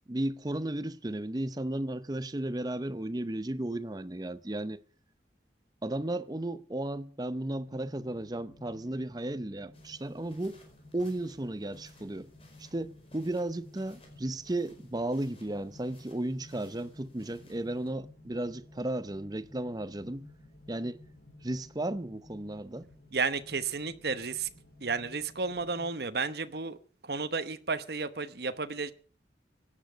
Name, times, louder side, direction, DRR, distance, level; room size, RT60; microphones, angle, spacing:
voice 1, 0.1-4.8 5.8-10.6 10.9-12.3 12.6-20.3 20.7-21.0 21.4-22.9, right 1 dB, 20° right, 0.6 m, -34 dB
sound 1, 7.7-25.8, left 1 dB, 85° left, 4.9 m, -55 dB
sound 2, 9.7-17.9, left 2 dB, 30° left, 4.7 m, -62 dB
voice 2, 23.1-24.5 24.8-26.8 27.0-28.9, right 4 dB, 60° right, 1.0 m, -32 dB
17.0 x 10.5 x 6.2 m
head